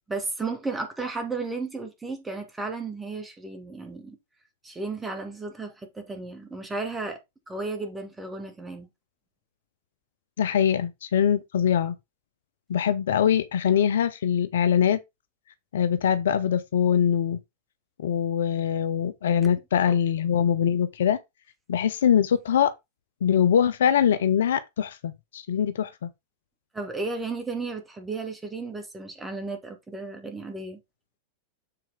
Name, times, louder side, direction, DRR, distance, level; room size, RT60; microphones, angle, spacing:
voice 1, 0.1-4.2 4.6-7.2 7.5-8.9 19.9-20.0 26.7-30.8, right 3 dB, 10° right, 2.5 m, -34 dB
voice 2, 10.4-12.0 12.7-15.0 15.7-17.4 18.0-21.2 21.7-22.7 23.2-26.1, left 8 dB, 60° left, 0.6 m, -23 dB
7.8 x 4.4 x 3.9 m
figure-of-eight pair, 90°, 0 cm